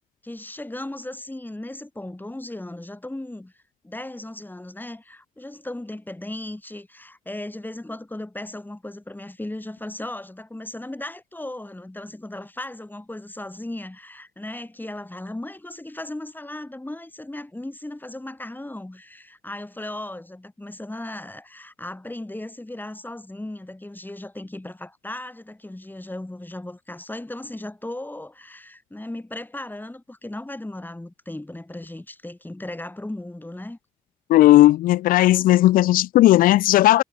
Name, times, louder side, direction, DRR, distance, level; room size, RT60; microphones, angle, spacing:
voice 1, 0.2-3.5 3.8-33.8, left 1 dB, 15° left, 1.8 m, -36 dB
voice 2, 34.3-37.0, left 15 dB, 85° left, 0.4 m, -15 dB
supercardioid pair, 45°, 14 cm